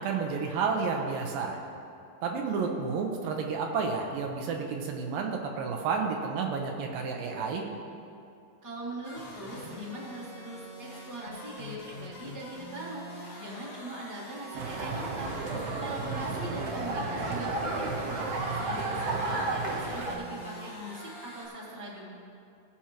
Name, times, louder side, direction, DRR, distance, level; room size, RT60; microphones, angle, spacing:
voice 1, 0.0-1.6 2.2-7.7, right 5 dB, 85° right, 2 dB, 2.6 m, -31 dB
voice 2, 8.6-13.1 13.3-15.4 15.8-18.2 18.5-22.1, right 2 dB, 10° right, -6 dB, 1.3 m, -41 dB
sound 1, 9.0-21.5, equal, 50° left, 0.8 m, -45 dB
sound 2, 14.5-20.1, right 3 dB, 65° right, 1.6 m, -32 dB
17.5 x 7.1 x 2.9 m, 2.6 s
omnidirectional pair, 3.9 m